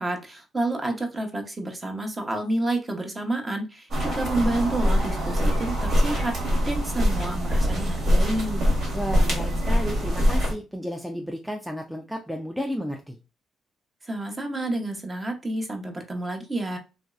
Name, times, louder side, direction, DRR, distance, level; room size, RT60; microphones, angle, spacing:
voice 1, 0.0-8.7 14.0-16.8, right 2 dB, 25° right, 4 dB, 0.8 m, -29 dB
sound 1, 3.9-10.5, equal, 65° right, 1.7 m, -23 dB
voice 2, 8.9-13.2, equal, ahead, 3 dB, 0.4 m, -32 dB
3.1 x 2.6 x 2.3 m, 0.30 s
cardioid pair, 90°, 0 cm